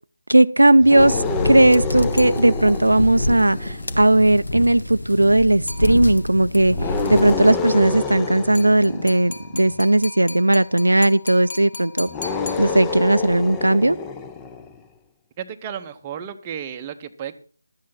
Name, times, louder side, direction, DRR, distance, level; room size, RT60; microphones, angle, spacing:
voice 1, 0.3-12.1 12.6-14.0, right 1 dB, 75° right, 0.5 m, -17 dB
sound 1, 0.8-4.4 6.7-9.8 12.1-14.8, left 4 dB, 10° left, 0.7 m, -28 dB
sound 2, 1.0-7.4, left 1 dB, 70° left, 1.6 m, -27 dB
sound 3, 2.2-3.0 5.7-6.4 8.6-13.2, left 3 dB, 30° left, 1.3 m, -38 dB
voice 2, 15.4-17.3, right 8 dB, 20° right, 0.8 m, -33 dB
12.5 x 8.5 x 5.8 m
figure-of-eight pair, 155°, 0 cm